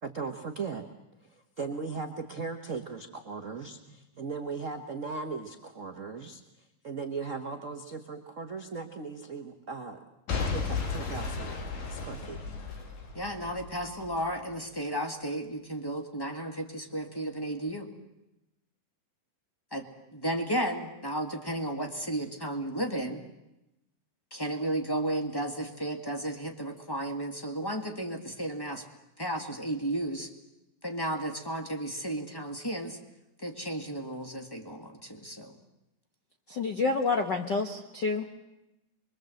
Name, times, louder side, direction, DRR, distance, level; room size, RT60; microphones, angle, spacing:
voice 1, 0.0-0.8 1.2-6.4 6.8-10.0 10.5-11.6 11.9-12.4, right 4 dB, 70° right, 4 dB, 0.7 m, -38 dB
Boom / Shatter / Crushing, 10.3-14.3 14.8-14.9, left 4 dB, 90° left, 4.2 m, -34 dB
voice 2, 13.1-17.9 19.7-23.2 24.3-28.8 29.2-30.3 30.8-33.0 33.4-35.6, right 1 dB, 10° left, 4 dB, 1.2 m, -33 dB
voice 3, 36.5-38.2, left 4 dB, 60° left, 4 dB, 1.2 m, -28 dB
25.0 x 23.0 x 7.8 m, 0.92 s
omnidirectional pair, 3.6 m